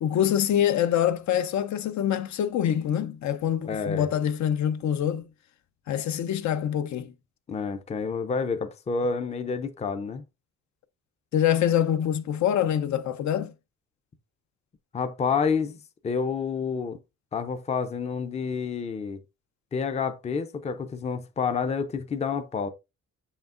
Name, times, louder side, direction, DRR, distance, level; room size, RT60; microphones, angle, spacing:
voice 1, 0.0-5.2 5.9-7.1 11.3-13.5, left 10 dB, 65° left, 0.6 m, -25 dB
voice 2, 3.7-4.1 7.5-10.2 14.9-15.8 16.0-17.0 17.3-19.2 19.7-22.7, left 5 dB, 20° left, 0.5 m, -29 dB
6.9 x 5.8 x 2.5 m
wide cardioid pair, 175°, 31 cm